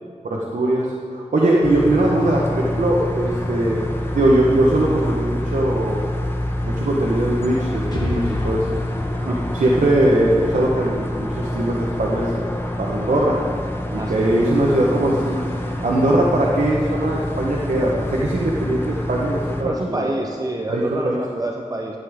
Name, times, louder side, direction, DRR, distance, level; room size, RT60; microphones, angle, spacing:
voice 1, 0.2-3.8 4.1-6.2 6.6-8.7 9.3-12.3 12.8-13.4 13.9-15.4 15.8-20.1 20.7-21.2, right 1 dB, 80° right, -3 dB, 1.1 m, -20 dB
sound 1, 1.6-19.6, left 1 dB, 15° left, 1.2 m, -27 dB
Explosion, 7.9-11.7, left 1 dB, 35° left, 1.9 m, -32 dB
voice 2, 13.9-14.4 19.6-22.0, right 2 dB, 30° right, 1 dB, 0.7 m, -28 dB
13.0 x 9.1 x 3.6 m, 2.2 s
wide cardioid pair, 55°, 13 cm